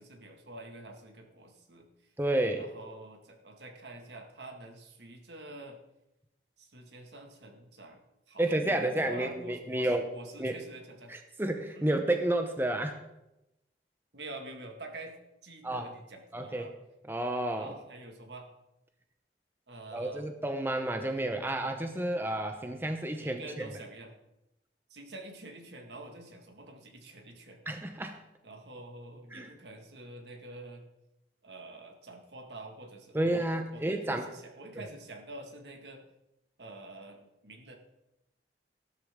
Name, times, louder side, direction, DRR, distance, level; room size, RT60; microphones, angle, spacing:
voice 1, 0.0-1.9 2.6-5.8 6.6-8.0 8.3-11.2 11.7-11.9 14.1-15.2 15.4-16.7 17.6-18.5 19.7-20.2 23.2-24.1 24.9-27.6 28.4-30.8 31.4-36.0 36.6-37.7, right 2 dB, 75° right, 3 dB, 1.9 m, -47 dB
voice 2, 2.2-2.7 8.4-10.0 10.4-10.5 11.1-13.0 15.6-15.9 16.3-16.7 17.0-17.7 19.9-23.7 27.7-28.2 29.3-29.5 33.1-34.3, right 1 dB, 10° right, 5 dB, 0.8 m, -31 dB
14.0 x 12.5 x 3.7 m, 0.91 s
head